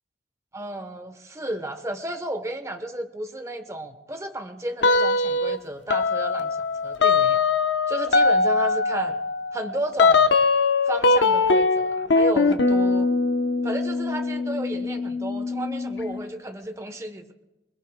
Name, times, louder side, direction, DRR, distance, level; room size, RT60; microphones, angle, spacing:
voice 1, 0.5-7.4 7.9-9.2 9.5-10.3 10.9-13.1 13.6-17.3, right 1 dB, 15° right, 8 dB, 0.9 m, -33 dB
sound 1, 4.8-5.6 5.9-16.2, left 3 dB, 75° left, 0.8 m, -21 dB
26.0 x 21.5 x 2.2 m, 1.0 s
head